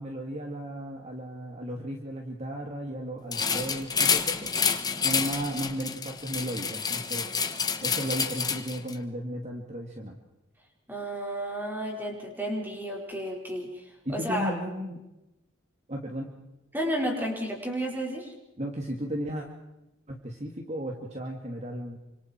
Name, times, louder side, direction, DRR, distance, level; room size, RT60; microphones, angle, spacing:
voice 1, 0.0-4.5 5.0-7.3 7.8-10.2 14.0-15.0 15.9-16.3 18.6-19.5 20.1-22.0, equal, 35° right, 1 dB, 2.4 m, -34 dB
sound 1, 3.3-8.9, left 6 dB, 20° left, 1.4 m, -28 dB
voice 2, 10.9-13.8 14.1-14.5 16.7-18.3, equal, 10° right, -1 dB, 5.0 m, -32 dB
29.0 x 26.0 x 4.6 m, 0.93 s
head